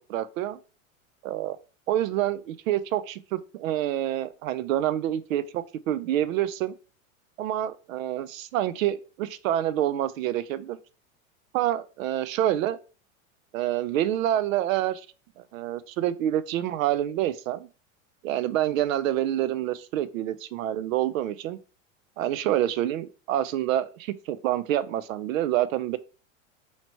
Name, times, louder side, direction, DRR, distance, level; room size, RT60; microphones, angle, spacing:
voice 1, 0.1-0.6 1.2-1.6 1.9-6.7 7.4-10.8 11.5-12.8 13.5-15.1 15.4-17.7 18.2-21.6 22.2-26.0, right 12 dB, 80° right, 0.6 m, -27 dB
2.9 x 2.9 x 4.3 m
supercardioid pair, 115°, 39 cm